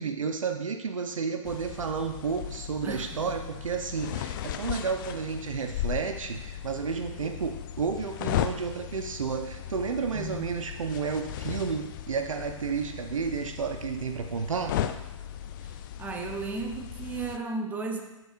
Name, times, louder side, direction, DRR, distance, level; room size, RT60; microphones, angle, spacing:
voice 1, 0.0-14.8, right 5 dB, 75° right, 6 dB, 0.7 m, -31 dB
sound 1, 1.5-17.4, left 10 dB, 40° left, 0.4 m, -36 dB
voice 2, 2.8-3.2 10.1-10.5 15.6-18.0, right 3 dB, 10° right, 3 dB, 0.6 m, -35 dB
14.0 x 4.8 x 2.5 m, 1.0 s
figure-of-eight pair, 120°, 17 cm